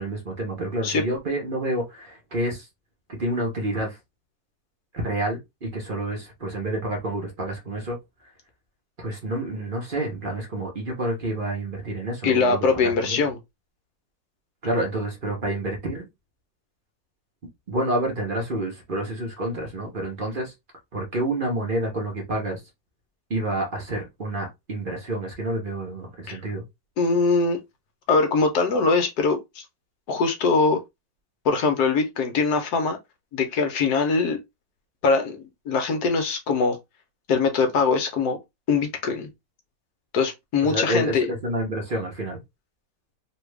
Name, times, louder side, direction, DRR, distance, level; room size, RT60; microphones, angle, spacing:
voice 1, 0.0-2.7 3.1-4.0 4.9-8.0 9.0-12.7 13.0-13.2 14.6-16.1 17.7-20.5 20.9-22.6 23.3-26.6 40.7-42.4, right 1 dB, 40° right, 0.8 m, -28 dB
voice 2, 12.2-13.4 26.3-26.4 27.0-27.6 28.1-29.6 30.1-30.8 31.4-33.0 33.3-34.4 35.0-36.8 37.3-38.4 38.7-39.3 40.1-41.3, left 4 dB, 65° left, 1.2 m, -22 dB
3.4 x 2.3 x 3.2 m
omnidirectional pair, 1.9 m